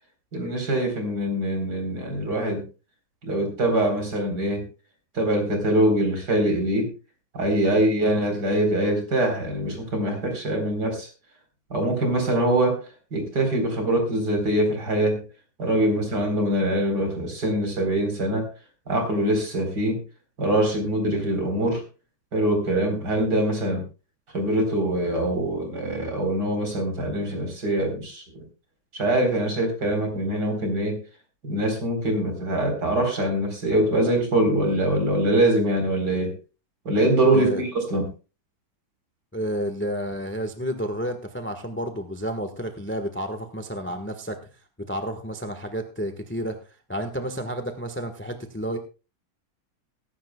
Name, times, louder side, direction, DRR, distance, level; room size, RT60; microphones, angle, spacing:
voice 1, 0.3-2.7 3.2-4.7 5.1-6.9 7.3-11.1 11.7-12.8 13.1-15.2 15.6-18.5 18.9-20.0 20.4-21.8 22.3-23.8 24.3-28.4 28.9-31.0 31.4-36.3 36.8-38.1, right 1 dB, 50° right, 4 dB, 4.6 m, -23 dB
voice 2, 39.3-44.4 44.8-46.6 46.9-48.8, equal, 10° left, 7 dB, 0.9 m, -31 dB
22.0 x 11.0 x 2.3 m, 0.32 s
omnidirectional pair, 2.2 m